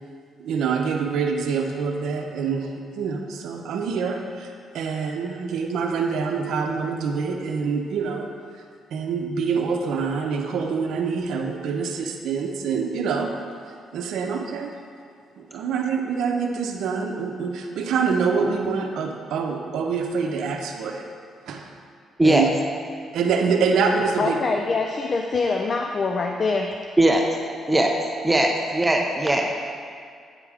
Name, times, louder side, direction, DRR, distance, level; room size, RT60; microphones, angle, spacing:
voice 1, 0.4-2.7 3.0-8.3 8.9-13.4 13.9-14.7 15.4-21.1 21.5-21.7 22.2-22.5 23.1-24.4, right 5 dB, 80° right, 3 dB, 0.7 m, -25 dB
voice 2, 24.2-26.8, left 4 dB, 45° left, 2 dB, 0.4 m, -24 dB
voice 3, 27.0-27.4 27.7-27.9 28.2-29.5, right 1 dB, 15° right, 1 dB, 0.6 m, -19 dB
8.9 x 3.5 x 4.8 m, 2.3 s
cardioid pair, 90°, 0 cm